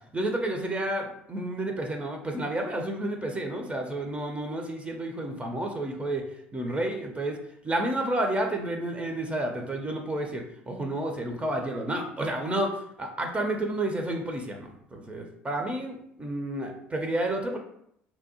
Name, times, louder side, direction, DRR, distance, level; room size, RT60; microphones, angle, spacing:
voice 1, 0.1-1.0 1.3-6.2 6.5-7.4 7.6-17.6, right 1 dB, 20° right, 3 dB, 0.5 m, -30 dB
2.6 x 2.0 x 2.8 m, 0.73 s
hypercardioid pair, 60°, 6 cm